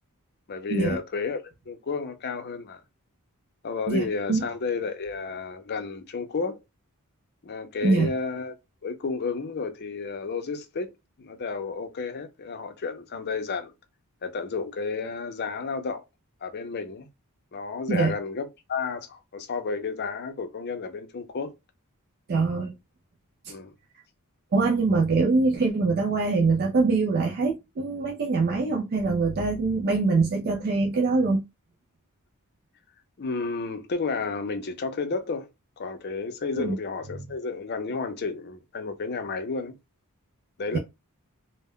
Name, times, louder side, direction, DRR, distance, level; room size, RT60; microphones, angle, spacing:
voice 1, 0.5-2.8 3.6-6.6 7.4-8.6 8.8-10.9 11.2-13.7 14.2-16.0 16.4-17.1 17.5-21.5 23.5-23.7 33.2-35.5 35.8-39.8 40.6-40.8, left 4 dB, 45° left, 0.5 m, -32 dB
voice 2, 3.9-4.5 7.8-8.1 17.9-18.2 22.3-22.7 23.4-23.5 24.5-31.4 36.6-36.8 40.7-40.8, right 3 dB, 45° right, 0.4 m, -24 dB
2.1 x 2.1 x 3.5 m
head